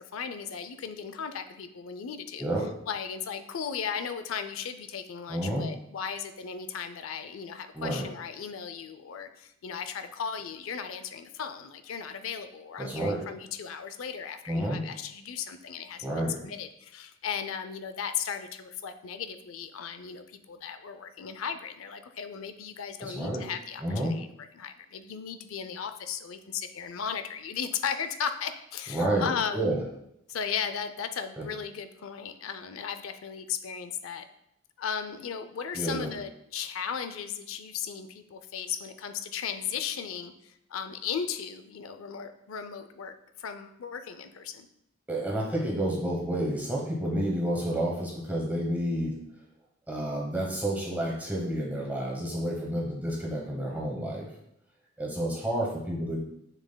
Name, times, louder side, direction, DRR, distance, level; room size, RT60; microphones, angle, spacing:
voice 1, 0.0-2.5 2.9-16.1 16.4-24.3 24.5-29.8 30.3-34.3 34.8-44.7, left 7 dB, 80° left, 9 dB, 0.5 m, -36 dB
voice 2, 2.4-2.8 5.3-5.7 7.7-8.1 12.8-13.3 14.5-14.8 16.0-16.4 23.0-23.5 23.8-24.2 28.9-29.8 31.4-31.5 35.7-36.1 45.1-49.2 49.9-54.3 55.0-56.2, right 1 dB, 10° right, -3 dB, 0.9 m, -30 dB
7.3 x 6.4 x 2.2 m, 0.78 s
head